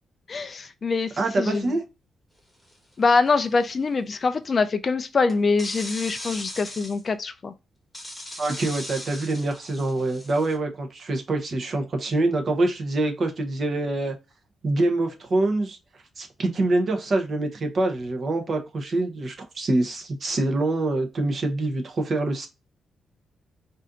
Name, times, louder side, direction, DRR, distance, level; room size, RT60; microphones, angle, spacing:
voice 1, 0.3-1.1 1.4-1.6 3.0-7.5, left 4 dB, 30° left, 0.3 m, -24 dB
voice 2, 1.2-1.8 8.4-14.1 14.6-15.8 16.2-22.5, right 2 dB, 40° right, 0.9 m, -25 dB
sound 1, 2.7-2.9 5.3-7.0 7.9-10.5, left 1 dB, 5° left, 1.3 m, -38 dB
4.2 x 2.6 x 3.7 m
wide cardioid pair, 160°, 0 cm